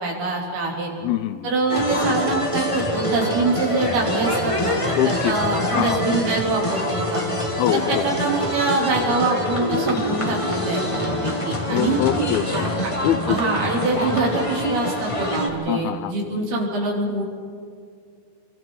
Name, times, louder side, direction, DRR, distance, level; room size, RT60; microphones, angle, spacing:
voice 1, 0.0-0.9 1.4-7.2 7.7-12.0 12.5-12.9 13.3-17.2, right 3 dB, 80° right, -2 dB, 5.2 m, -24 dB
voice 2, 1.0-1.5 5.0-5.4 5.7-6.0 7.6-8.1 11.7-12.7 13.0-13.4 15.7-16.1, left 13 dB, 85° left, 13 dB, 2.5 m, -23 dB
sound 1, 1.7-15.5, left 1 dB, 45° left, 0.4 m, -25 dB
29.5 x 23.0 x 3.9 m, 2.2 s
omnidirectional pair, 4.4 m